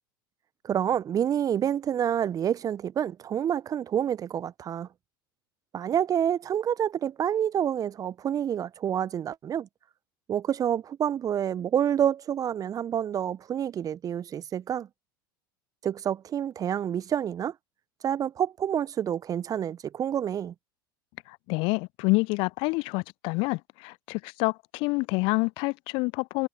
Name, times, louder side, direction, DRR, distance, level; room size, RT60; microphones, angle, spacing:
voice 1, 0.6-4.9 5.7-9.7 10.3-14.9 15.8-17.5 18.0-20.5, right 9 dB, 30° right, 1.0 m, -28 dB
voice 2, 21.3-26.5, left 28 dB, 50° left, 0.7 m, -28 dB
figure-of-eight pair, 75°, 12 cm